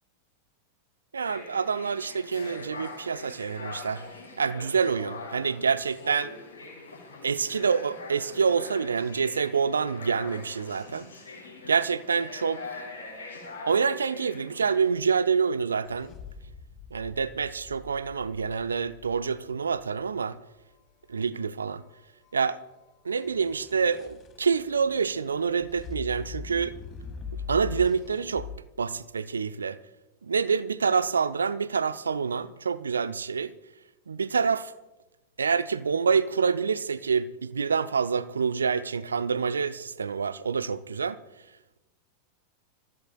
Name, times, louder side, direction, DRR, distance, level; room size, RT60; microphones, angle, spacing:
voice 1, 1.1-4.0 4.4-6.3 7.2-11.1 11.6-12.9 13.7-16.1 16.9-20.4 21.1-21.8 22.3-22.6 23.0-26.8 27.5-28.5 28.8-29.8 30.2-33.5 34.1-34.7 35.4-41.2, right 5 dB, 75° right, 0.5 m, -27 dB
sound 1, 1.2-14.9, left 3 dB, 80° left, 4.0 m, -43 dB
sound 2, 15.9-19.9 23.2-28.6, left 6 dB, 30° left, 1.3 m, -42 dB
26.5 x 14.5 x 2.3 m
figure-of-eight pair, 90°, 0 cm